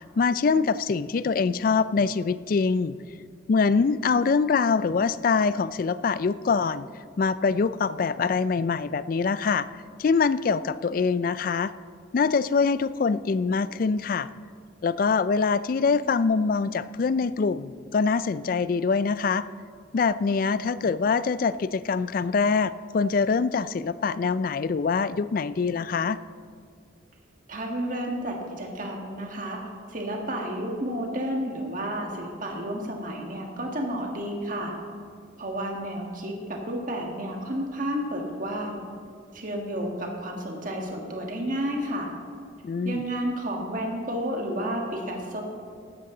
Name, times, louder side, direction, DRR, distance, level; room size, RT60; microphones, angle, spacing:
voice 1, 0.0-3.0 3.5-6.9 7.2-9.7 10.0-11.7 12.1-14.3 14.8-19.4 19.9-26.2 42.6-43.0, left 5 dB, 45° left, 16 dB, 0.3 m, -24 dB
voice 2, 27.5-29.6 29.9-34.8 35.4-38.9 39.3-42.1 42.8-45.4, equal, 40° right, 1 dB, 1.7 m, -31 dB
15.0 x 12.0 x 3.8 m, 2.2 s
head